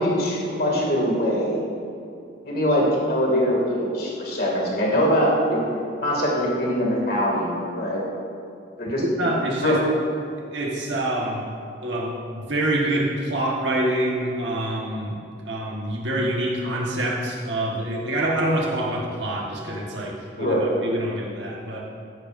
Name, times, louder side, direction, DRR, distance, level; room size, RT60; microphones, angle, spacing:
voice 1, 0.0-1.6 2.4-8.0 8.8-9.0 9.6-9.8 20.4-20.7, equal, 55° left, -3 dB, 2.3 m, -23 dB
voice 2, 9.2-9.8 10.5-11.5 11.8-21.8, right 1 dB, 70° right, -3 dB, 1.4 m, -26 dB
14.0 x 10.5 x 2.6 m, 2.5 s
head